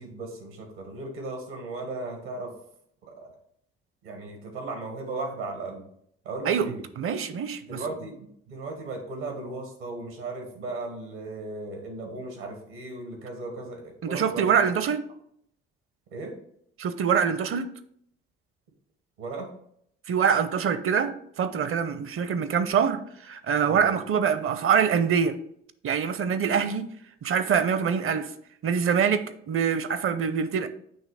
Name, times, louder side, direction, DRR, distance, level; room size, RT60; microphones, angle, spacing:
voice 1, 0.0-2.5 3.0-3.4 4.0-5.8 6.2-6.8 7.6-14.6 16.1-16.3 19.2-19.5 23.6-23.9, right 2 dB, 80° right, 1.6 m, -36 dB
voice 2, 6.5-7.8 14.0-15.0 16.8-17.7 20.1-25.4 25.8-26.9 27.2-28.3 28.6-30.7, right 7 dB, 45° right, 0.7 m, -25 dB
8.1 x 3.1 x 4.9 m
hypercardioid pair, 55°, 30 cm